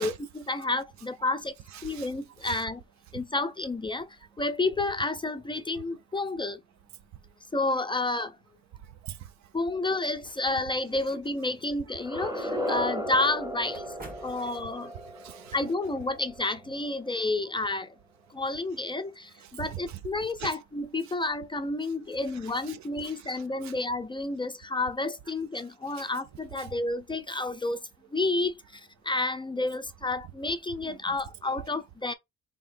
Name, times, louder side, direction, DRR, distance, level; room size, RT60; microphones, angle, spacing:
voice 1, 0.0-1.5 1.8-2.8 3.1-6.6 7.5-8.4 9.5-13.9 14.2-14.9 15.5-17.9 18.3-27.8 28.1-32.1, left 2 dB, 15° left, 0.4 m, -30 dB
voice 2, 1.7-2.1 2.4-2.6 3.1-3.2 8.8-9.3 14.2-15.5 19.4-20.0 20.4-20.6 22.7-23.7 25.9-26.1 26.6-26.7 31.1-31.2, right 11 dB, 65° right, 0.6 m, -43 dB
sound 1, 9.8-15.1, right 3 dB, 30° right, 1.5 m, -53 dB
sound 2, 11.9-16.9, left 1 dB, 10° right, 1.0 m, -35 dB
3.7 x 3.6 x 2.5 m
cardioid pair, 90°, 30 cm